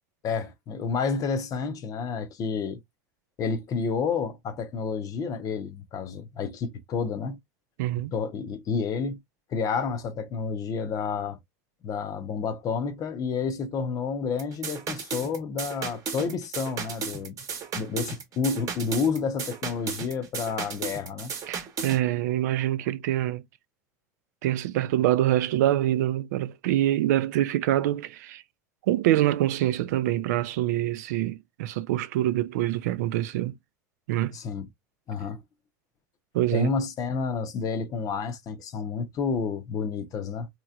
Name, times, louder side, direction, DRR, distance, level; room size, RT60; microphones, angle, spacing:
voice 1, 0.2-2.8 3.4-7.4 8.1-9.2 9.5-11.4 11.8-17.4 17.7-21.3 34.3-34.7 35.1-35.4 36.5-40.5, left 5 dB, 40° left, 0.7 m, -30 dB
voice 2, 7.8-8.1 21.5-23.4 24.4-28.4 28.9-33.5 34.1-34.4 36.3-36.7, right 14 dB, 70° right, 0.3 m, -25 dB
sound 1, 14.4-22.0, right 6 dB, 35° right, 0.9 m, -35 dB
3.1 x 2.9 x 2.4 m
hypercardioid pair, 90°, 9 cm